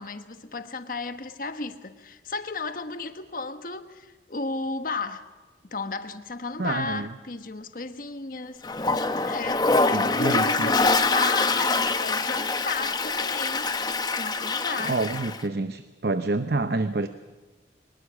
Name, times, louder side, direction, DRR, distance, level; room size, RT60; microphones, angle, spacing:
voice 1, 0.0-5.3 5.6-8.7 9.3-13.7 14.2-15.0, left 3 dB, 50° left, 1.2 m, -34 dB
voice 2, 6.6-7.1 9.9-10.7 14.8-17.1, right 2 dB, 60° right, 0.8 m, -27 dB
Toilet flush, 8.6-15.4, left 3 dB, 25° left, 0.9 m, -25 dB
23.0 x 20.0 x 6.2 m
head